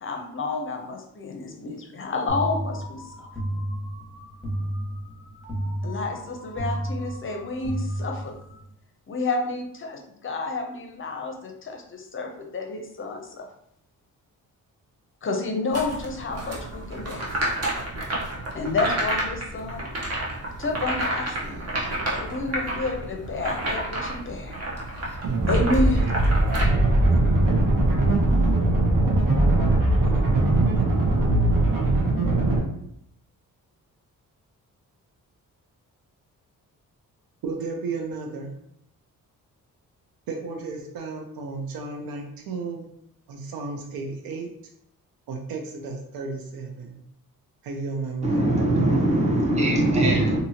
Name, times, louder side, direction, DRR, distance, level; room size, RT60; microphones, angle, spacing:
voice 1, 0.0-3.3 5.8-8.4 9.1-13.5 15.2-17.3 18.5-19.9 20.6-21.6 22.1-24.6 24.9-26.1, left 3 dB, 35° left, 4 dB, 0.6 m, -30 dB
sound 1, 2.3-8.7, right 1 dB, ahead, 1.1 m, -32 dB
sound 2, 15.7-26.6, right 1 dB, 45° right, 0.9 m, -30 dB
sound 3, 25.2-32.6, right 2 dB, 70° right, 1.0 m, -20 dB
voice 2, 37.4-38.5 40.3-42.9 43.3-44.5 45.3-47.0 47.6-48.4, right 4 dB, 85° right, 2 dB, 0.5 m, -33 dB
voice 3, 48.2-50.4, right 1 dB, 20° right, -2 dB, 0.7 m, -21 dB
2.7 x 2.6 x 2.8 m, 0.74 s
cardioid pair, 90°, 35 cm